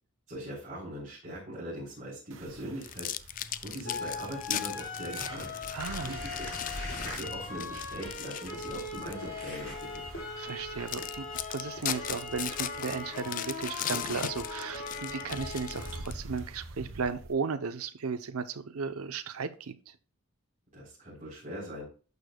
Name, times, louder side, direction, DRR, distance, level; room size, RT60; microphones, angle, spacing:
voice 1, 0.3-3.1 3.6-5.5 6.0-6.5 7.0-10.0 20.7-21.9, equal, 35° right, -8 dB, 3.8 m, -41 dB
sound 1, 2.3-17.3, right 1 dB, 60° right, 1.0 m, -48 dB
sound 2, 2.8-9.3 9.8-10.0 10.5-10.6 10.9-16.4, left 10 dB, 40° left, 0.3 m, -38 dB
sound 3, 3.8-16.0, left 3 dB, 60° left, 4.3 m, -39 dB
voice 2, 5.7-6.2 10.4-11.2 11.5-20.0, right 5 dB, 85° right, 10 dB, 0.7 m, -35 dB
11.5 x 6.7 x 2.3 m, 0.37 s
head